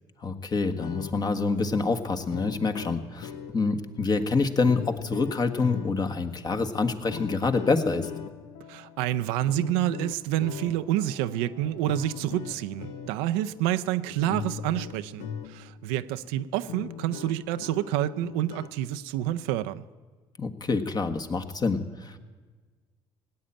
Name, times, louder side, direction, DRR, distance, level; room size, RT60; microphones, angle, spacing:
voice 1, 0.2-8.1 20.4-22.2, left 4 dB, 35° left, 1.4 m, -27 dB
sound 1, 0.6-15.8 16.2-16.3 16.6-18.8, left 8 dB, 75° left, 0.8 m, -41 dB
voice 2, 8.7-19.8, right 13 dB, 85° right, 0.5 m, -28 dB
18.0 x 8.7 x 8.8 m
supercardioid pair, 70°, 12 cm